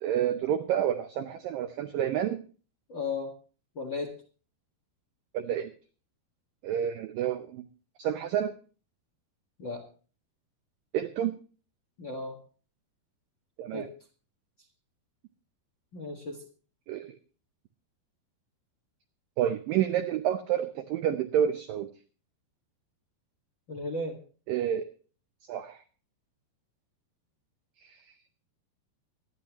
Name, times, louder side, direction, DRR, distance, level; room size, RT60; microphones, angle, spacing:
voice 1, 0.0-2.4 5.3-5.7 6.6-7.7 8.0-8.5 10.9-11.4 13.6-13.9 16.9-17.1 19.4-21.9 24.5-24.9 25.5-25.8 27.8-28.0, right 10 dB, 85° right, 9 dB, 1.9 m, -29 dB
voice 2, 2.9-3.3 3.7-4.1 9.6-9.8 12.0-12.4 13.7-13.9 15.9-16.4 23.7-24.2, left 3 dB, 55° left, 2 dB, 1.3 m, -35 dB
23.0 x 10.0 x 3.0 m, 0.38 s
omnidirectional pair, 4.9 m